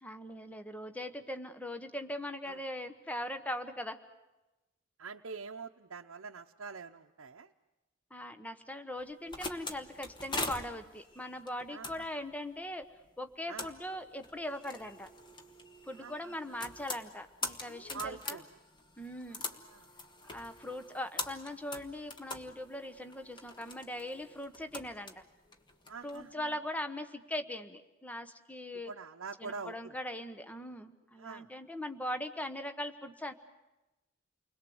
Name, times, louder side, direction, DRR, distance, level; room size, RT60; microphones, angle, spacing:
voice 1, 0.0-4.0 8.1-12.9 13.2-15.1 15.8-18.4 19.0-19.4 20.3-25.1 26.0-28.9 29.4-33.3, left 1 dB, 5° left, 9 dB, 1.1 m, -40 dB
voice 2, 5.0-7.5 11.7-11.9 13.5-13.7 16.0-16.7 17.9-18.5 19.7-19.9 25.9-26.6 28.8-29.7 31.2-31.5, right 5 dB, 85° right, 1 dB, 0.8 m, -44 dB
sound 1, 9.0-26.2, left 2 dB, 20° left, 1.5 m, -44 dB
29.5 x 21.5 x 7.9 m, 1.0 s
head